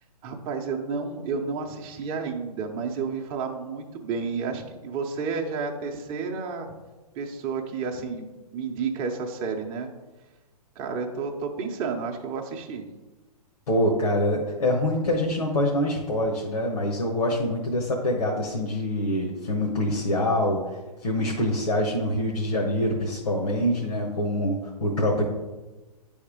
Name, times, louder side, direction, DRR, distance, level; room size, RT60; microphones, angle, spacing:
voice 1, 0.2-6.7 7.1-9.9 10.8-12.9, right 5 dB, 25° right, 2 dB, 0.9 m, -31 dB
voice 2, 13.7-20.6 21.0-25.3, left 1 dB, 65° left, -1 dB, 1.4 m, -25 dB
9.8 x 3.6 x 5.0 m, 1.2 s
figure-of-eight pair, 120°, 20 cm